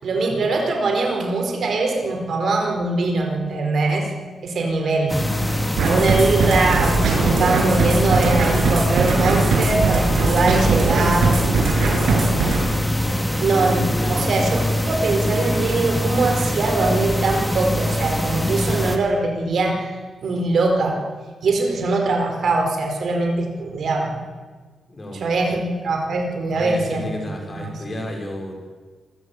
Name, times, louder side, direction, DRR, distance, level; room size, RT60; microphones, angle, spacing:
voice 1, 0.0-4.1 4.4-5.2 5.8-11.3 12.0-12.5 13.4-19.9 20.2-21.0 21.4-24.1 25.1-27.2 27.5-27.8, right 3 dB, 50° right, 3 dB, 4.5 m, -22 dB
sound 1, 5.1-19.0, left 1 dB, 5° left, 2.0 m, -23 dB
sound 2, 5.8-12.6, right 4 dB, 85° right, 6.9 m, -20 dB
voice 2, 13.9-14.2 24.9-25.6 26.5-28.6, left 1 dB, 20° left, 2 dB, 5.0 m, -32 dB
26.5 x 15.5 x 8.5 m, 1.4 s
wide cardioid pair, 175°, 0 cm